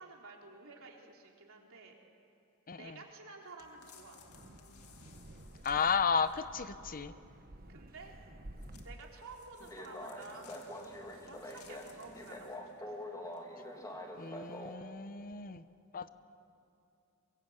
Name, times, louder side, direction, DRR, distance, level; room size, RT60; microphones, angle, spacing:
voice 1, 0.0-2.0 2.8-4.2 7.7-8.2 8.8-12.9, right 3 dB, 65° right, 0 dB, 3.5 m, -52 dB
voice 2, 2.7-3.0 5.6-7.1 14.1-15.6 15.9-16.1, left 6 dB, 40° left, 13 dB, 0.7 m, -33 dB
sound 1, 3.6-6.6 8.6-12.8 13.3-13.4, left 5 dB, 80° left, 2.1 m, -60 dB
Wind, 4.2-9.2, right 1 dB, 45° right, 1.1 m, -52 dB
sound 2, 9.6-14.8, left 1 dB, 15° left, 2.3 m, -45 dB
23.5 x 22.5 x 8.0 m, 2.6 s
head